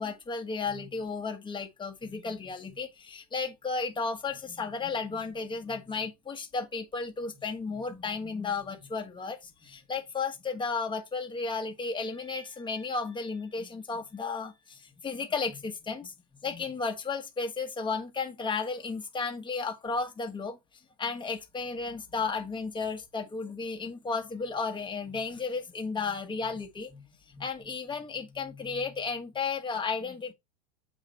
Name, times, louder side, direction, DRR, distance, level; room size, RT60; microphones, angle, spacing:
voice 1, 0.0-16.1 16.4-20.6 21.0-30.3, left 4 dB, 15° left, 1.3 m, -34 dB
7.5 x 4.8 x 3.2 m
supercardioid pair, 130°, 37 cm